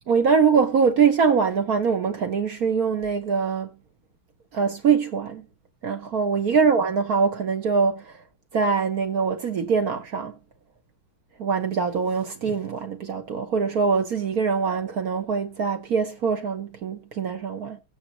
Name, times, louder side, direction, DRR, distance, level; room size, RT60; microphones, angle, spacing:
voice 1, 0.1-3.7 4.5-5.4 5.8-8.1 8.5-10.3 11.4-17.8, right 5 dB, 55° right, 1.2 m, -23 dB
16.5 x 9.0 x 3.0 m
omnidirectional pair, 2.4 m